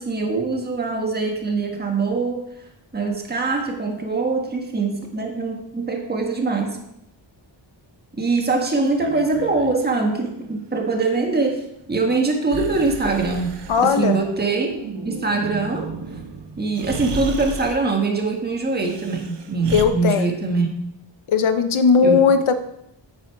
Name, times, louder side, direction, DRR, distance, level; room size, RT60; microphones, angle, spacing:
voice 1, 0.0-2.5 2.9-6.8 8.1-13.6 13.8-14.7 15.0-15.9 16.6-20.7 22.0-22.2, right 3 dB, 20° right, 2 dB, 1.5 m, -23 dB
Breathing, 8.9-9.8 12.5-14.0 16.1-16.2 16.7-17.9 18.7-19.8, right 5 dB, 60° right, 0.9 m, -33 dB
sound 1, 13.6-18.1 20.5-20.7, right 4 dB, 90° right, 2.1 m, -37 dB
voice 2, 13.7-14.2 19.7-20.3 21.3-22.5, left 5 dB, 85° left, 9 dB, 1.1 m, -17 dB
9.4 x 9.4 x 4.7 m, 0.79 s
wide cardioid pair, 150°, 47 cm